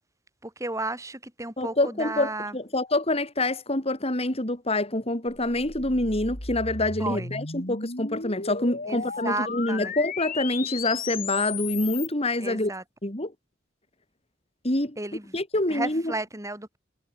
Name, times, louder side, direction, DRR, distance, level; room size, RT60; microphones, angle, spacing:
voice 1, 0.4-2.6 7.0-7.4 8.8-9.9 12.4-12.8 15.0-15.3 15.7-16.8, right 2 dB, 15° right, 7.8 m, -33 dB
voice 2, 1.6-12.7 13.0-13.3 14.6-15.0 15.3-16.0, left 2 dB, 35° left, 4.3 m, -26 dB
sound 1, 5.3-12.1, left 5 dB, 50° left, 4.3 m, -35 dB
head